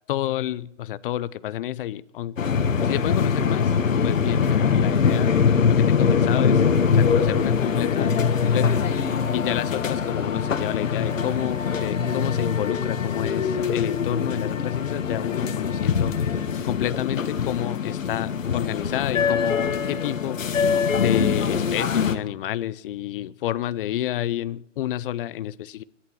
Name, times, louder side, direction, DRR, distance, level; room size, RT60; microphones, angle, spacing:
voice 1, 0.1-2.3 2.8-3.7 4.0-5.3 5.7-6.6 6.9-8.1 8.4-8.8 9.3-16.1 16.6-25.8, left 13 dB, 45° left, 18 dB, 0.7 m, -30 dB
sound 1, 2.4-22.1, left 6 dB, 85° left, 1.7 m, -23 dB
23.5 x 11.5 x 4.6 m, 0.74 s
hypercardioid pair, 140°, 38 cm